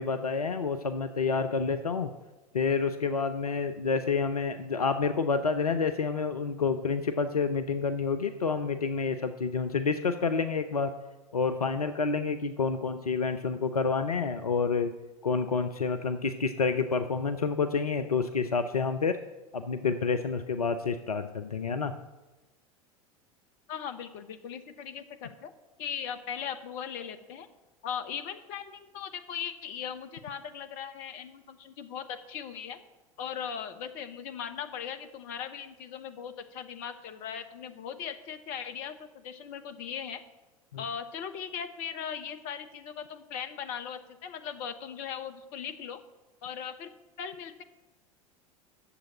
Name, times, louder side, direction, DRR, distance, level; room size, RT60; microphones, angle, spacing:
voice 1, 0.0-2.1 2.5-10.9 11.3-14.9 15.2-19.2 19.5-21.9 40.7-40.8, left 5 dB, 80° left, 8 dB, 0.6 m, -28 dB
voice 2, 23.7-25.5 25.8-27.5 27.8-32.8 33.2-40.2 40.8-46.0 46.4-46.9 47.2-47.6, left 8 dB, 50° left, 8 dB, 1.2 m, -39 dB
9.8 x 7.4 x 8.7 m, 1.1 s
figure-of-eight pair, 80°, 19 cm